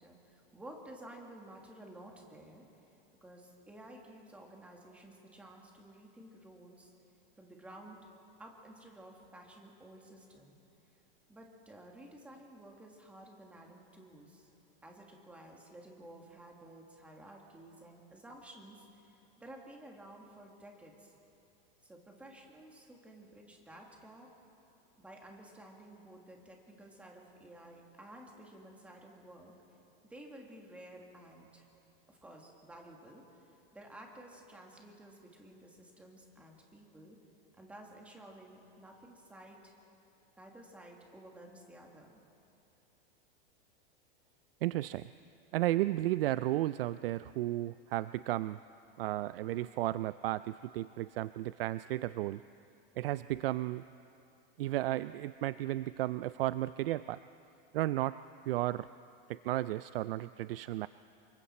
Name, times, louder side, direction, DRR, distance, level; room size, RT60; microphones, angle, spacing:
voice 1, 0.0-2.6 3.2-6.9 7.4-8.1 8.4-10.6 11.3-14.5 14.8-21.1 21.8-24.3 25.0-29.5 30.1-31.6 32.1-37.2 37.6-39.7 40.4-42.2, right 1 dB, 5° right, 0 dB, 1.7 m, -53 dB
voice 2, 44.6-45.0 45.5-48.6 49.0-52.4 53.0-53.8 54.6-57.2 57.7-58.2 58.5-58.9 59.3-60.9, right 15 dB, 75° right, 15 dB, 0.5 m, -33 dB
27.5 x 24.0 x 4.3 m, 2.8 s
supercardioid pair, 175°, 29 cm